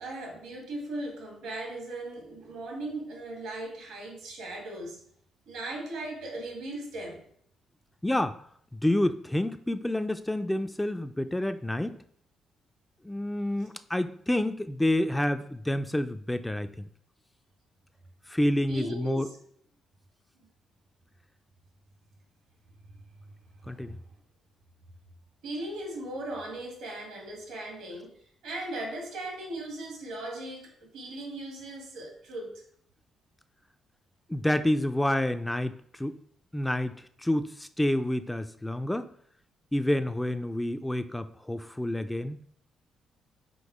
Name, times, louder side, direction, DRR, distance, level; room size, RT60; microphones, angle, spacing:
voice 1, 0.0-5.0 5.5-7.2 18.7-19.4 23.2-23.4 23.6-24.0 25.4-28.2 28.4-32.6, right 1 dB, 90° right, 0 dB, 2.1 m, -38 dB
voice 2, 8.0-8.4 8.7-12.0 13.0-16.7 18.3-19.3 23.7-24.0 34.3-36.1 36.5-39.1 39.7-42.4, left 1 dB, 10° left, 9 dB, 0.4 m, -28 dB
5.3 x 3.8 x 4.8 m, 0.64 s
cardioid pair, 90°, 0 cm